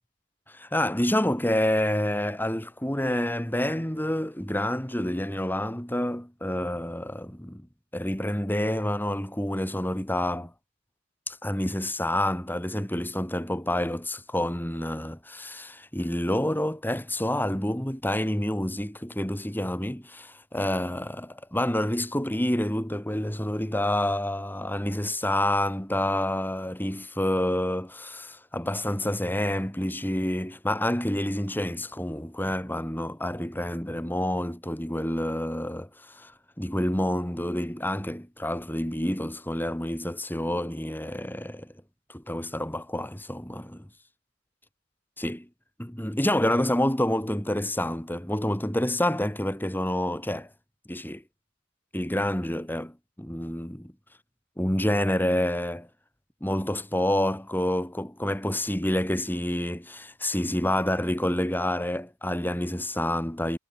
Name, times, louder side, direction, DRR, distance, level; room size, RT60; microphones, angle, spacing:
voice 1, 0.5-7.7 7.9-10.5 11.3-36.3 36.6-41.7 42.1-43.9 45.2-45.4 45.8-50.5 50.9-51.2 51.9-53.9 54.6-55.9 56.4-63.6, left 1 dB, 10° left, 3.1 m, -28 dB
head